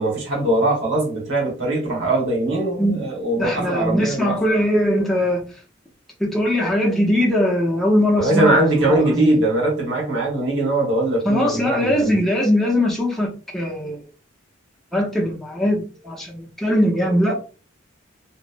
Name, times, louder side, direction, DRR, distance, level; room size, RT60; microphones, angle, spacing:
voice 1, 0.0-4.3 8.2-12.1, right 2 dB, 70° right, 1.3 m, -21 dB
voice 2, 3.4-5.5 6.2-9.3 11.2-14.0 14.9-17.5, equal, ahead, 0.5 m, -21 dB
2.9 x 2.0 x 2.5 m
head